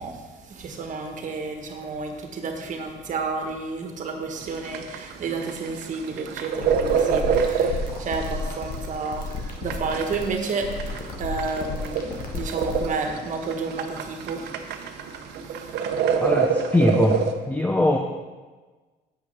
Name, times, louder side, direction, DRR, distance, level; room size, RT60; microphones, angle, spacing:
voice 1, 0.0-16.2, right 4 dB, 50° right, 4 dB, 1.5 m, -31 dB
sound 1, 4.4-17.3, right 6 dB, 80° right, 0.8 m, -27 dB
sound 2, 6.5-12.9, left 3 dB, 55° left, 1.6 m, -32 dB
voice 2, 16.2-18.0, left 1 dB, 10° left, 2 dB, 0.6 m, -22 dB
7.9 x 5.9 x 6.0 m, 1.3 s
cardioid pair, 110°, 17 cm